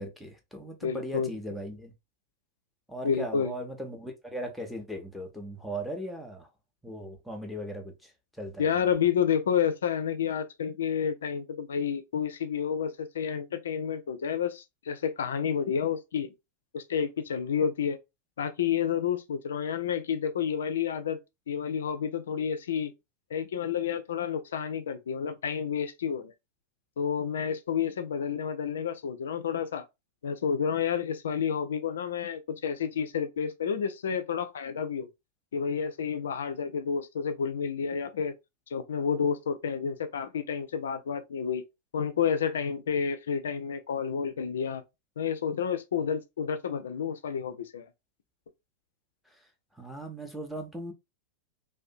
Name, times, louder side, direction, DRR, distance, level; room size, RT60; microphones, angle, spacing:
voice 1, 0.0-1.9 2.9-6.5 6.8-8.1 8.4-8.7 49.8-50.9, right 1 dB, ahead, 0.6 m, -38 dB
voice 2, 0.8-1.4 3.0-3.5 8.6-16.3 16.7-18.0 18.4-21.2 21.5-22.9 23.3-26.2 27.0-29.8 30.2-35.1 35.5-38.3 38.7-41.6 41.9-44.8 45.2-47.8, left 7 dB, 65° left, 0.3 m, -30 dB
2.5 x 2.1 x 2.5 m
figure-of-eight pair, 90°, 0 cm